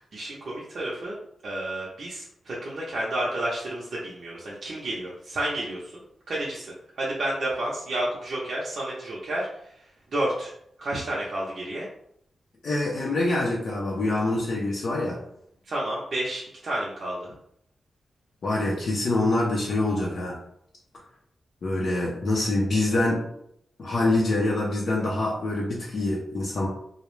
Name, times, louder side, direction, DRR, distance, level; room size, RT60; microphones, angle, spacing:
voice 1, 0.1-1.1 1.4-6.0 6.3-9.5 10.1-10.5 10.8-11.9 15.7-17.3, right 1 dB, 55° right, -6 dB, 0.5 m, -30 dB
voice 2, 12.6-15.2 18.4-20.4 21.6-23.2 23.8-26.7, left 2 dB, 60° left, -4 dB, 0.5 m, -25 dB
2.3 x 2.0 x 3.0 m, 0.72 s
wide cardioid pair, 115°, 0 cm